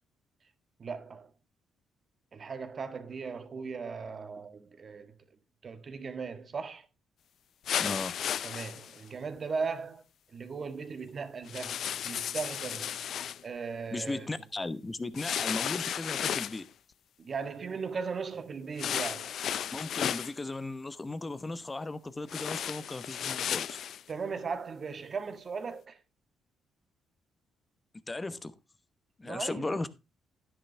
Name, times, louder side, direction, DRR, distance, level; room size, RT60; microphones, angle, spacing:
voice 1, 0.8-1.3 2.3-5.2 5.6-6.8 8.4-10.0 10.3-11.8 12.0-13.0 13.4-14.3 17.2-19.4 24.1-26.0 29.2-29.8, right 5 dB, 45° right, 1.5 m, -37 dB
sound 1, 7.7-9.0 11.5-13.4 15.1-16.6 18.8-20.3 22.3-24.0, left 9 dB, 65° left, 0.5 m, -34 dB
voice 2, 7.8-8.2 13.9-16.6 19.7-23.8 28.1-28.6 29.2-29.9, left 2 dB, 20° left, 1.0 m, -36 dB
11.0 x 10.0 x 3.4 m
cardioid pair, 90°, 0 cm